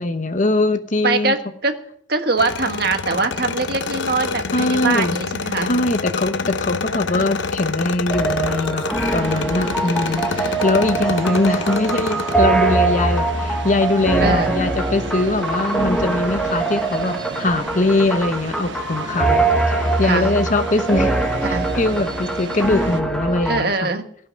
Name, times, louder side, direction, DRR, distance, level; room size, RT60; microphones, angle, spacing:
voice 1, 0.0-1.3 4.5-5.2 5.6-8.8 9.1-21.2 21.5-23.9, left 2 dB, 40° left, 9 dB, 0.9 m, -21 dB
voice 2, 1.0-1.8 2.1-5.7 6.9-7.3 11.0-11.4 14.2-14.5 20.0-20.3 21.4-21.7 23.4-24.0, right 3 dB, 55° right, 6 dB, 1.5 m, -23 dB
sound 1, 2.4-12.3, left 4 dB, 75° left, 0.7 m, -27 dB
sound 2, 8.1-23.7, right 3 dB, 5° left, 1.3 m, -23 dB
sound 3, 9.0-23.0, right 3 dB, 75° right, 1.2 m, -34 dB
17.0 x 5.9 x 9.0 m, 0.64 s
head